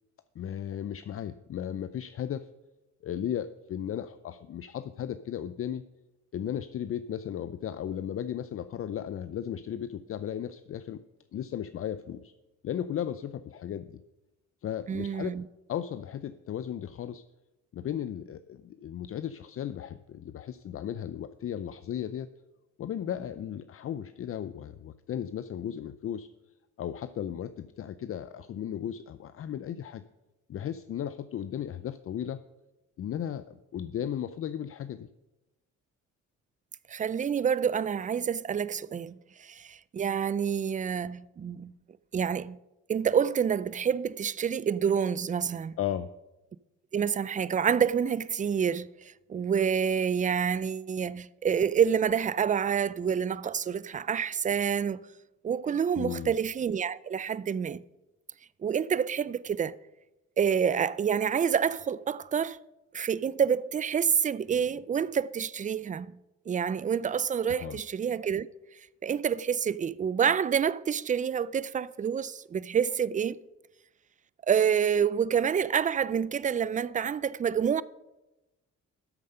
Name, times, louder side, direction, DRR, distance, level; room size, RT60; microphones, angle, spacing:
voice 1, 0.4-2.5 3.0-5.8 6.3-11.0 11.3-12.3 12.6-14.0 14.6-15.3 15.7-17.2 17.7-22.3 22.8-26.3 26.8-30.0 30.5-32.4 33.0-35.1 45.8-46.1 56.0-56.3 67.5-67.8, left 10 dB, 50° left, 0.5 m, -35 dB
voice 2, 14.9-15.5 36.9-41.7 42.1-42.6 42.9-45.7 46.9-55.0 55.4-57.8 58.6-59.8 60.4-62.6 62.9-66.2 66.5-68.5 69.0-73.4 74.5-77.8, right 7 dB, 25° right, 0.4 m, -28 dB
13.0 x 7.4 x 5.5 m
cardioid pair, 90°, 30 cm